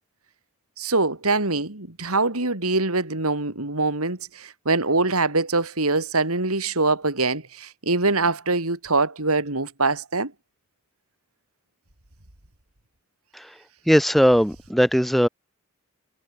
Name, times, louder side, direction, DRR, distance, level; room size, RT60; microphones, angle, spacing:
voice 1, 0.8-10.3, right 3 dB, 85° right, 3.9 m, -23 dB
voice 2, 13.9-15.3, equal, ahead, 2.1 m, -19 dB
head